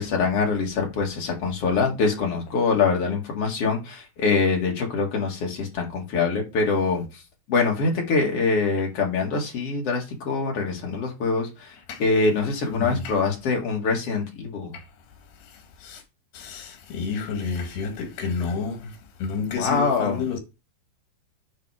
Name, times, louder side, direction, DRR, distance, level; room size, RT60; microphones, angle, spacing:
voice 1, 0.0-7.2 7.5-14.7 19.5-20.2, left 4 dB, 45° left, 2.5 m, -24 dB
voice 2, 12.7-13.2 15.8-16.0 16.3-18.9 19.2-20.4, left 5 dB, 85° left, 3.8 m, -29 dB
9.8 x 4.2 x 4.8 m
omnidirectional pair, 4.6 m